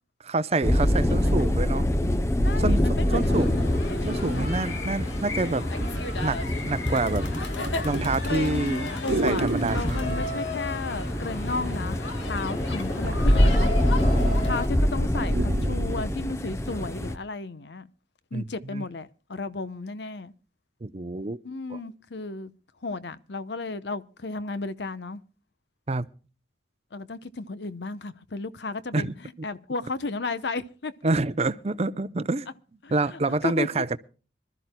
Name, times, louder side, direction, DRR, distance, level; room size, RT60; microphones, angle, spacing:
voice 1, 0.2-1.9 2.6-2.8 3.1-3.6 4.1-5.7 6.2-6.4 6.6-7.3 7.8-8.9 9.2-10.1 14.1-14.5 18.3-18.4 18.7-18.9 20.8-21.4 21.7-21.8 25.9-26.1 28.9-29.1 31.0-32.5 32.9-34.0, right 3 dB, 35° right, 0.6 m, -27 dB
sound 1, 0.6-17.2, left 1 dB, 15° left, 0.6 m, -25 dB
voice 2, 1.1-1.4 2.4-3.4 3.9-4.5 8.2-13.7 14.4-17.9 18.3-20.3 21.4-22.5 22.8-25.2 26.9-30.9 32.8-33.7, left 3 dB, 65° left, 0.8 m, -34 dB
sound 2, 3.2-14.7, left 2 dB, 90° left, 1.8 m, -35 dB
sound 3, 4.0-5.2 5.8-6.0 6.4-6.8 7.1-10.0 11.1-11.6 12.0-14.2 14.6-14.7 15.0-16.1 16.8-16.9, right 1 dB, 80° right, 1.2 m, -31 dB
26.0 x 13.0 x 2.2 m
head